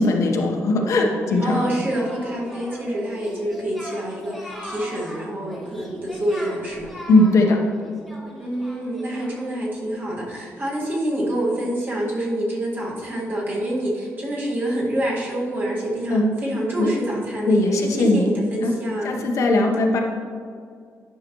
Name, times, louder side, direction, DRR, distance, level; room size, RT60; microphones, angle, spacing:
voice 1, 0.0-1.6 7.1-7.6 16.1-16.3 16.8-16.9 17.5-18.3 18.6-18.7 19.0-20.0, left 2 dB, 65° left, 1 dB, 0.9 m, -19 dB
Singing, 1.3-9.6, equal, 5° right, 1.4 m, -39 dB
voice 2, 1.4-6.9 8.4-19.1, right 1 dB, 35° right, -5 dB, 1.8 m, -27 dB
10.5 x 5.7 x 3.0 m, 2.2 s
cardioid pair, 140°, 6 cm